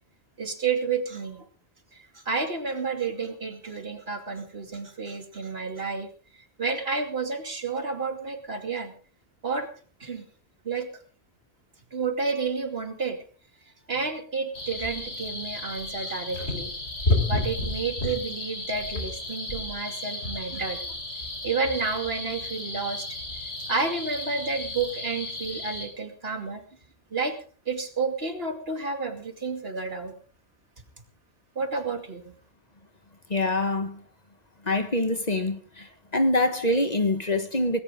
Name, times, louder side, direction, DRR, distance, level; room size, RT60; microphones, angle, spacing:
voice 1, 0.4-1.5 2.1-6.1 6.6-8.9 9.4-9.7 10.0-10.2 10.6-10.9 11.9-13.2 13.9-16.7 17.3-21.0 21.4-23.1 23.7-26.6 27.1-27.4 27.7-30.1 31.6-32.3, right 4 dB, 60° right, 2.7 m, -30 dB
sound 1, 14.5-25.9, left 2 dB, 70° left, 4.6 m, -32 dB
voice 2, 33.3-34.0 34.7-35.9 36.1-37.8, left 1 dB, 35° left, 1.5 m, -25 dB
19.0 x 17.5 x 3.7 m
omnidirectional pair, 1.2 m